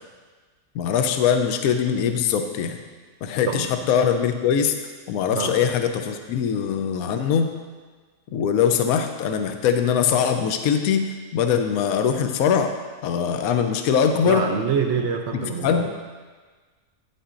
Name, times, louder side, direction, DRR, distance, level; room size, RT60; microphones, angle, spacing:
voice 1, 0.7-2.8 3.2-4.7 5.1-7.5 8.3-14.4 15.6-15.9, left 7 dB, 75° left, 6 dB, 1.0 m, -22 dB
voice 2, 14.2-15.9, right 6 dB, 60° right, 4 dB, 0.8 m, -25 dB
10.0 x 9.9 x 2.5 m, 1.4 s
omnidirectional pair, 1.6 m